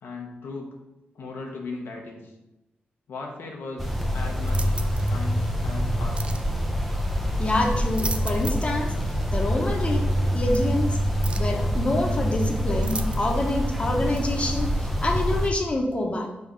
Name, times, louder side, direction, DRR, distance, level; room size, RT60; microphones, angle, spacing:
voice 1, 0.0-0.8 1.1-2.3 3.1-6.4, left 3 dB, 85° left, 0 dB, 0.9 m, -38 dB
sound 1, 3.8-15.5, equal, ahead, 0.7 m, -25 dB
sound 2, 4.4-5.2 6.2-6.5 7.7-8.8 9.1-9.2 10.5-10.6 11.2-11.6 12.8-13.5 14.1-14.3, right 3 dB, 30° right, 0.5 m, -36 dB
voice 2, 7.4-8.9 9.3-11.0 11.4-16.3, left 1 dB, 30° left, 2 dB, 1.1 m, -26 dB
5.3 x 3.4 x 5.2 m, 0.96 s
cardioid pair, 80°, 4 cm